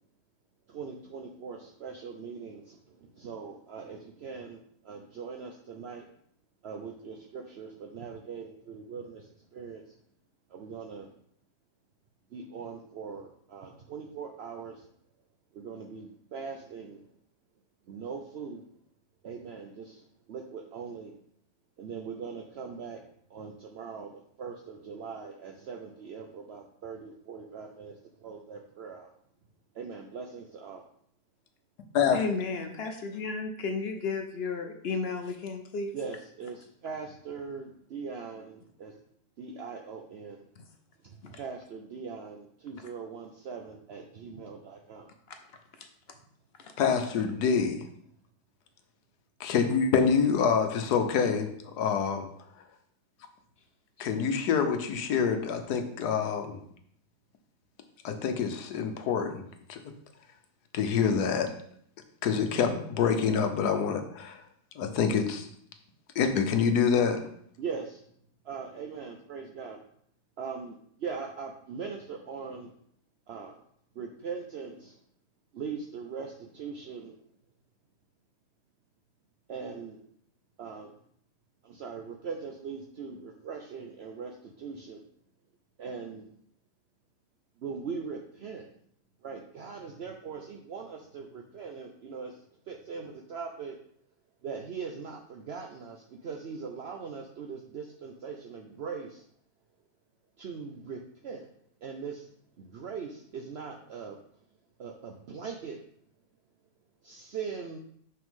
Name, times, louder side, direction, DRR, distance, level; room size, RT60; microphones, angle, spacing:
voice 1, 0.7-6.0 6.6-9.8 10.5-11.1 12.3-14.9 15.5-17.1 17.9-18.7 19.2-21.2 21.8-23.0 23.3-24.1 24.4-29.1 29.7-30.8 35.9-39.0 39.4-40.4 41.0-45.1 49.9-50.1 67.6-68.0 68.4-69.8 70.4-72.7 73.3-73.6 74.0-75.0 75.5-77.2 79.5-80.0 80.6-80.9 81.6-85.0 85.8-86.3 87.6-88.7 89.2-92.3 92.7-93.8 94.4-99.2 100.4-101.5 101.8-102.3 102.6-104.2 104.8-105.8 107.0-107.8, right 5 dB, 70° right, 0.6 m, -41 dB
voice 2, 32.1-36.0 40.6-40.7 41.2-41.4 45.3-45.4 46.6-46.7 54.3-54.4, left 4 dB, 55° left, 0.7 m, -33 dB
voice 3, 46.8-47.9 49.4-52.3 54.0-56.6 58.0-59.9 60.7-61.5 62.2-64.4 64.8-65.5 66.1-67.3, left 6 dB, 70° left, 1.3 m, -26 dB
6.1 x 5.8 x 3.6 m
omnidirectional pair, 1.8 m